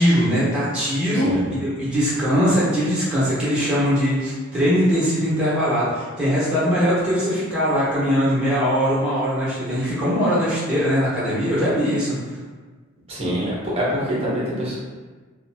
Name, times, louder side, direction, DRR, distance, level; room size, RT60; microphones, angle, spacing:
voice 1, 0.0-12.3, equal, 5° right, -12 dB, 1.0 m, -21 dB
voice 2, 1.1-1.5 13.1-14.8, equal, 25° right, -6 dB, 0.7 m, -25 dB
2.6 x 2.2 x 2.7 m, 1.3 s
head